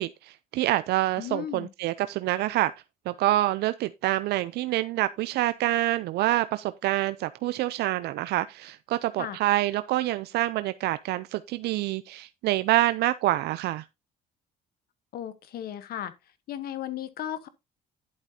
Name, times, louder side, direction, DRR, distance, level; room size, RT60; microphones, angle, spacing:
voice 1, 0.0-2.7 3.1-13.8, right 16 dB, 75° right, 0.5 m, -26 dB
voice 2, 1.2-1.7 9.2-9.4 15.1-16.1 16.5-17.5, left 11 dB, 65° left, 1.1 m, -35 dB
11.0 x 7.4 x 2.8 m
cardioid pair, 110°, 17 cm